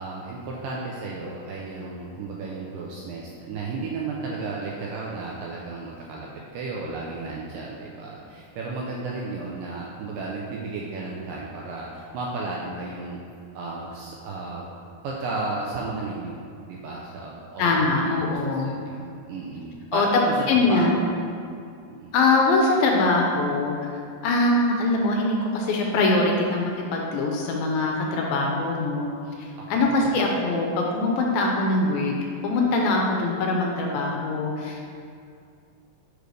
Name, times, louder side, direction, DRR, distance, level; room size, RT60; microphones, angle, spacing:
voice 1, 0.0-13.2 13.6-14.7 15.0-16.4 16.7-21.1 21.9-22.1 29.6-30.2, right 3 dB, 85° right, -3 dB, 2.0 m, -34 dB
voice 2, 17.6-18.7 19.9-20.1 20.5-21.0 22.1-23.9 24.2-29.1 29.4-32.1 32.4-34.9, left 2 dB, 80° left, 0 dB, 2.3 m, -23 dB
6.7 x 3.2 x 5.2 m, 2.4 s
omnidirectional pair, 4.4 m